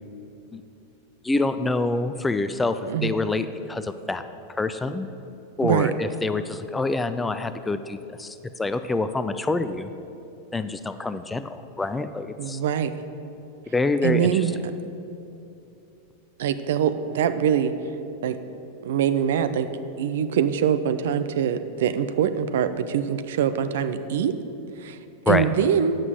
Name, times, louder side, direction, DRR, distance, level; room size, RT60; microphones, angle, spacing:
voice 1, 1.2-4.2 4.5-5.1 5.6-9.9 10.5-12.6 13.7-14.5 25.3-25.5, left 3 dB, 10° left, 11 dB, 0.4 m, -26 dB
voice 2, 5.6-5.9 12.4-12.9 14.0-14.6 16.4-17.7 18.2-18.4 18.8-19.7 20.0-24.3 24.8-25.0 25.3-26.0, right 8 dB, 55° right, 10 dB, 0.5 m, -23 dB
8.9 x 5.9 x 7.8 m, 2.8 s
figure-of-eight pair, 90°, 0 cm